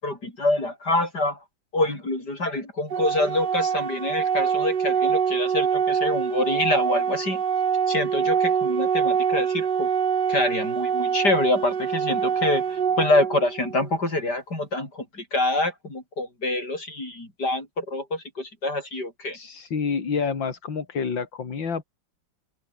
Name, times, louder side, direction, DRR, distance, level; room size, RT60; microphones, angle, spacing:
voice 1, 0.0-1.4 1.7-7.4 7.9-9.9 10.3-19.4, left 2 dB, 55° left, 8.8 m, -26 dB
Organ, 2.9-13.9, right 7 dB, 60° right, 2.2 m, -24 dB
voice 2, 19.3-21.8, left 5 dB, 70° left, 3.4 m, -28 dB
open air
omnidirectional pair, 2.1 m